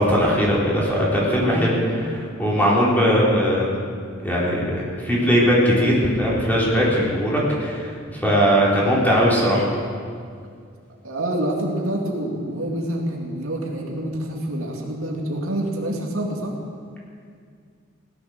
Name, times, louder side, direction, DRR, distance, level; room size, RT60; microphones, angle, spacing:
voice 1, 0.0-3.7 4.2-9.7, equal, 10° left, -5 dB, 3.6 m, -19 dB
voice 2, 11.0-16.5, right 1 dB, 85° right, -1 dB, 2.4 m, -27 dB
16.5 x 11.0 x 6.6 m, 2.1 s
head